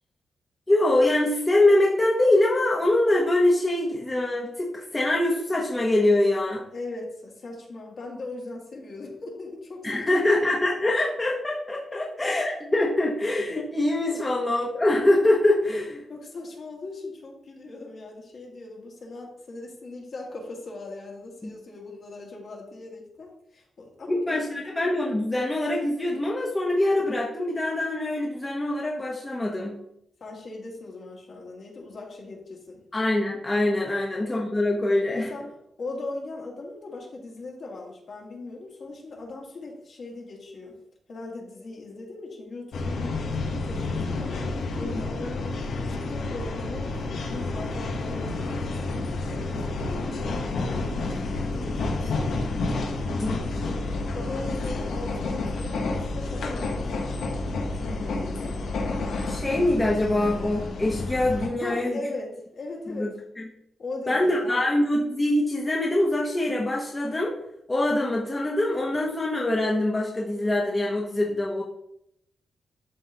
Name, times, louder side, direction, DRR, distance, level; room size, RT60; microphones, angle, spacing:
voice 1, 0.7-6.6 9.8-16.0 21.4-21.5 24.1-29.8 32.9-35.3 44.9-45.3 53.1-53.4 59.3-62.0 62.9-63.4 64.1-67.3 67.7-71.6, left 1 dB, 20° left, -3 dB, 1.1 m, -24 dB
voice 2, 6.7-10.3 14.1-14.2 16.1-24.4 30.2-32.8 33.9-34.1 35.1-35.4 35.8-40.8 41.1-43.4 43.6-45.5 45.9-52.5 53.5-57.2 57.8-58.6 61.6-63.1 63.8-64.6, left 2 dB, 55° left, -2 dB, 2.0 m, -39 dB
sound 1, 42.7-61.5, left 3 dB, 85° left, 1.2 m, -30 dB
11.5 x 3.9 x 2.9 m, 0.76 s
wide cardioid pair, 125°, 0 cm